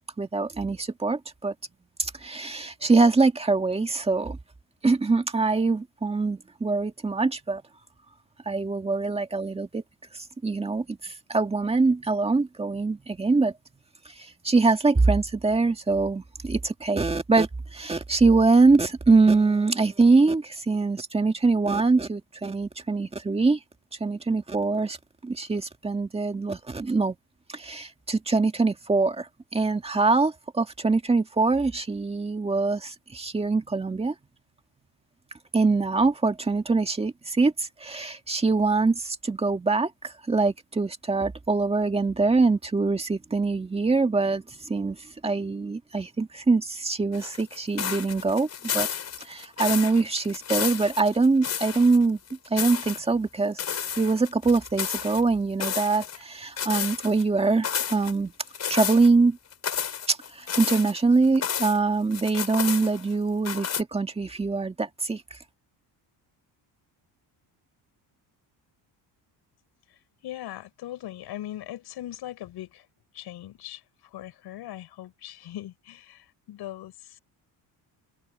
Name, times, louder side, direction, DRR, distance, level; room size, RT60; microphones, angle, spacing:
voice 1, 0.2-1.5 2.0-4.4 4.8-7.6 8.5-9.8 10.4-13.5 14.2-23.6 24.0-25.0 25.2-27.2 27.5-34.1 35.5-45.0 45.2-48.9 49.2-52.2 52.5-53.6 54.0-58.3 58.7-59.4 60.1-65.2, right 3 dB, 15° right, 1.8 m, -23 dB
sound 1, 47.1-52.0 52.3-53.0 53.6-55.2 55.6-56.2 56.6-57.2 57.6-58.1 58.5-59.1 59.5-61.8 62.1-63.1 63.5-63.8, left 8 dB, 40° left, 5.2 m, -31 dB
voice 2, 69.9-72.9 73.1-77.2, left 13 dB, 65° left, 6.8 m, -40 dB
open air
cardioid pair, 155°, 42 cm